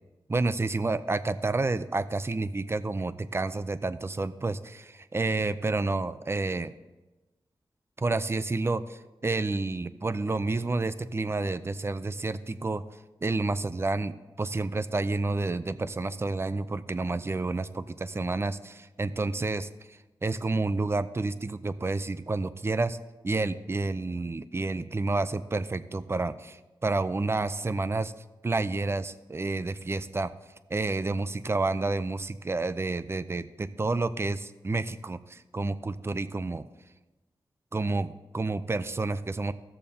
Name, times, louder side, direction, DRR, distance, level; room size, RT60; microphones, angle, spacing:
voice 1, 0.3-6.7 8.0-12.8 13.2-19.7 20.2-23.0 23.2-28.1 28.4-30.3 30.7-36.6 37.7-39.5, right 3 dB, 25° right, 13 dB, 0.5 m, -29 dB
15.5 x 6.9 x 2.8 m, 1.1 s
cardioid pair, 55°, 9 cm